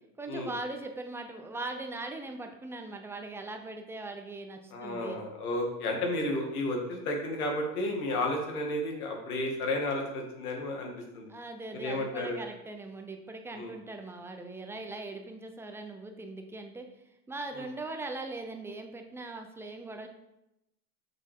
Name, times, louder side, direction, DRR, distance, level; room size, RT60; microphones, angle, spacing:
voice 1, 0.2-5.2 11.3-16.9 17.3-20.1, right 2 dB, 5° right, 4 dB, 0.4 m, -40 dB
voice 2, 4.7-11.3 11.8-12.4 13.5-13.7 17.5-17.6, left 1 dB, 75° left, 1 dB, 2.2 m, -32 dB
6.3 x 6.0 x 3.6 m, 0.87 s
hypercardioid pair, 120°, 44 cm